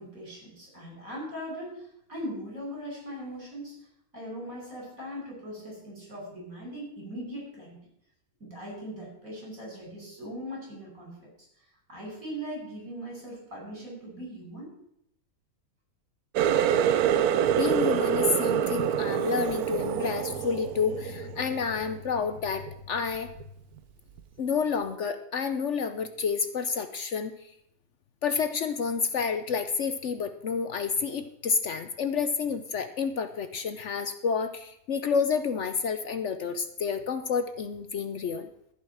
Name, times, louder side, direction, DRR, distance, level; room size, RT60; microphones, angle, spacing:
voice 1, 0.0-3.8 4.1-7.8 8.4-11.3 11.9-14.7, equal, 65° right, -2 dB, 5.7 m, -40 dB
Water tap faucet, 16.4-21.8 22.2-22.7 23.2-23.4 24.2-24.3, right 9 dB, 80° right, 1.2 m, -26 dB
voice 2, 17.5-23.3 24.4-27.3 28.2-38.5, left 6 dB, 60° left, 10 dB, 1.0 m, -29 dB
14.5 x 5.6 x 7.6 m, 0.75 s
omnidirectional pair, 1.6 m